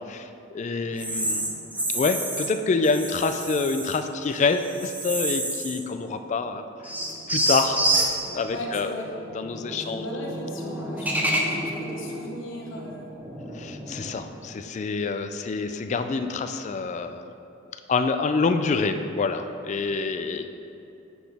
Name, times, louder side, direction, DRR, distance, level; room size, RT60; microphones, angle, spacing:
voice 1, 0.1-1.5 1.9-6.6 7.3-7.8 8.3-9.0 9.3-10.0 13.5-17.3 17.9-20.5, left 4 dB, 35° left, 8 dB, 0.3 m, -26 dB
sound 1, 1.0-2.5 2.8-4.0 4.3-5.9 6.2-6.3 6.8-14.2, right 1 dB, 10° right, 0.6 m, -29 dB
voice 2, 8.5-9.1 9.9-13.1, equal, 70° left, -1 dB, 0.9 m, -36 dB
7.7 x 6.1 x 3.5 m, 2.8 s
head